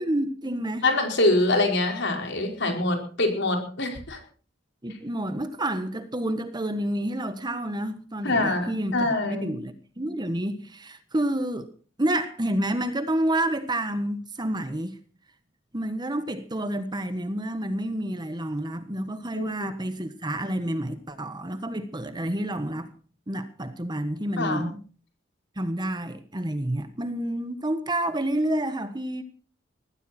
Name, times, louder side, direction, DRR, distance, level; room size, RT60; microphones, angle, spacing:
voice 1, 0.0-0.8 4.8-11.7 12.0-15.0 15.7-22.9 23.3-24.7 25.6-29.2, right 1 dB, 20° right, 1.4 m, -29 dB
voice 2, 0.8-4.2 8.2-9.6 19.3-19.7 24.4-24.7, left 2 dB, 65° left, 4.9 m, -25 dB
20.0 x 14.5 x 4.4 m
head